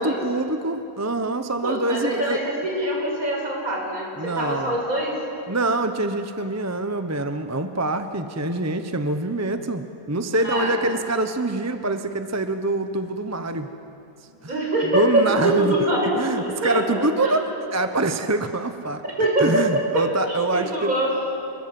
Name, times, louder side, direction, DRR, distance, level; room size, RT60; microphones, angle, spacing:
voice 1, 0.0-2.4 4.2-4.8 5.5-13.7 14.9-15.7 16.1-19.0 19.4-20.9, right 2 dB, 15° right, 8 dB, 0.7 m, -25 dB
voice 2, 1.6-5.2 10.3-10.8 14.5-17.4 19.2-19.6 19.9-21.2, right 1 dB, 60° right, -2 dB, 6.7 m, -24 dB
27.0 x 21.5 x 7.8 m, 2.6 s
omnidirectional pair, 1.7 m